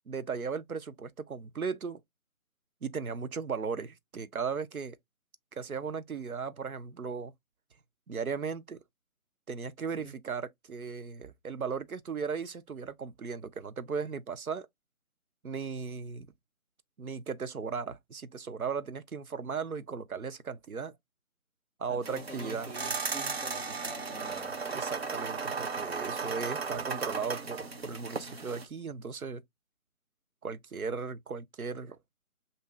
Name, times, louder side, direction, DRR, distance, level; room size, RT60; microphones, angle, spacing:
voice 1, 0.1-2.0 2.8-5.0 5.5-7.3 8.1-8.8 9.5-14.7 15.4-16.3 17.0-20.9 21.8-22.7 24.6-29.4 30.4-32.0, right 5 dB, 85° right, 0.7 m, -36 dB
voice 2, 21.9-24.6, equal, 25° right, 1.8 m, -46 dB
sound 1, 22.0-28.7, right 4 dB, 45° right, 0.7 m, -36 dB
7.1 x 2.6 x 2.3 m
figure-of-eight pair, 155°, 42 cm